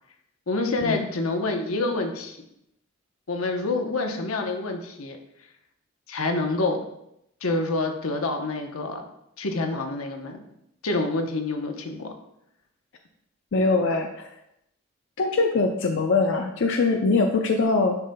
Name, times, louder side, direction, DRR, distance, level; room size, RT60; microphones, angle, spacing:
voice 1, 0.5-2.4 3.3-5.2 6.1-6.9 7.4-9.0 9.4-10.4 10.8-12.1, left 2 dB, 90° left, 4 dB, 0.9 m, -27 dB
voice 2, 13.5-14.3 15.2-18.0, left 3 dB, 60° left, 3 dB, 0.5 m, -22 dB
9.6 x 5.5 x 2.2 m, 0.79 s
head